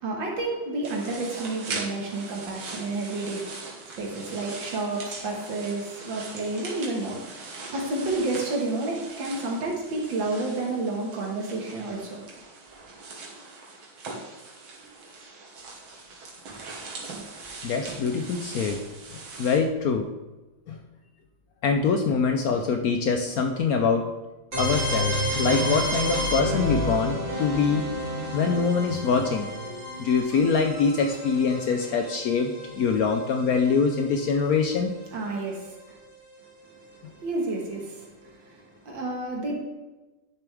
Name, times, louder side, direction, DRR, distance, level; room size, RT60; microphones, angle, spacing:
voice 1, 0.0-12.2 35.1-36.0 36.7-36.8 37.1-39.6, right 2 dB, 70° right, -1 dB, 2.1 m, -31 dB
sound 1, 0.8-19.6, right 3 dB, 90° right, 2.3 m, -41 dB
voice 2, 17.6-18.8 19.1-20.1 20.7-20.8 21.6-24.1 24.6-27.9 28.3-29.5 30.0-34.9, left 5 dB, 70° left, 4 dB, 0.8 m, -24 dB
sound 2, 24.5-34.2, equal, 55° right, 3.9 m, -30 dB
10.5 x 6.9 x 3.4 m, 1.1 s
omnidirectional pair, 2.2 m